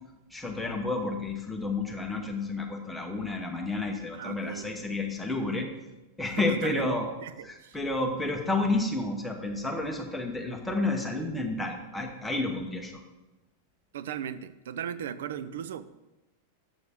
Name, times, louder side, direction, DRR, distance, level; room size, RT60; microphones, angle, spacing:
voice 1, 0.3-5.7 6.2-7.1 7.4-13.0, left 2 dB, ahead, 1 dB, 0.9 m, -30 dB
voice 2, 4.1-4.7 6.5-6.9 7.2-7.8 13.9-15.8, right 9 dB, 75° right, 14 dB, 0.5 m, -37 dB
11.0 x 7.2 x 3.6 m, 1.0 s
supercardioid pair, 180°, 0 cm